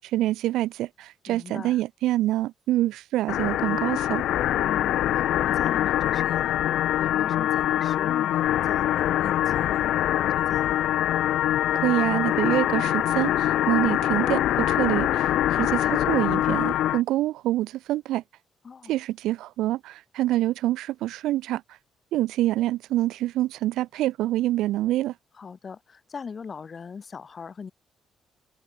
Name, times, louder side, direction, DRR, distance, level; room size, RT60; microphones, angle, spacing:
voice 1, 0.0-4.2 11.7-18.2 18.9-21.6 22.1-25.1, right 15 dB, 90° right, 0.6 m, -26 dB
voice 2, 1.3-1.8 4.7-10.8 18.6-19.0 25.3-27.7, left 5 dB, 40° left, 5.3 m, -40 dB
sound 1, 3.3-17.0, left 13 dB, 80° left, 0.5 m, -24 dB
cardioid pair, 90°, 0 cm